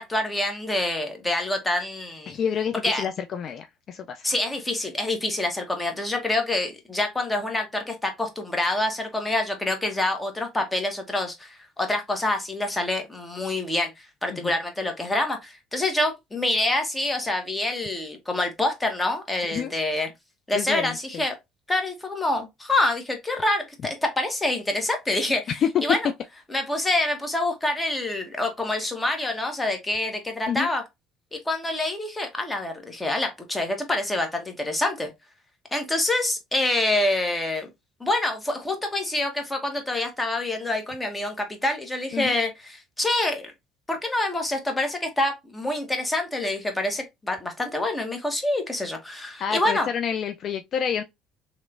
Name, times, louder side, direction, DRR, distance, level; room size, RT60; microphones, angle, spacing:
voice 1, 0.0-2.4 2.8-3.0 4.2-20.1 20.5-21.4 21.7-25.4 25.8-26.0 26.5-30.8 31.3-35.1 35.7-37.7 38.0-42.5 43.0-43.5 43.9-49.9, left 2 dB, 15° left, 1.2 m, -26 dB
voice 2, 2.3-4.2 14.3-14.5 19.4-19.7 20.5-21.2 25.5-25.8 30.5-30.7 42.1-42.3 49.4-51.0, left 8 dB, 50° left, 0.3 m, -28 dB
3.1 x 3.0 x 2.4 m
hypercardioid pair, 60°, 0 cm